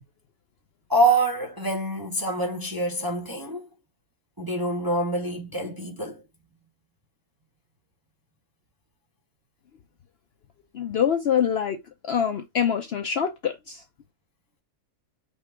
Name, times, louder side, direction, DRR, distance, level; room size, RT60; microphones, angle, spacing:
voice 1, 0.9-3.7 4.4-6.2, right 2 dB, 20° right, 0.6 m, -25 dB
voice 2, 10.7-11.8 12.0-13.8, left 8 dB, 60° left, 0.7 m, -25 dB
5.2 x 2.4 x 3.3 m
omnidirectional pair, 1.5 m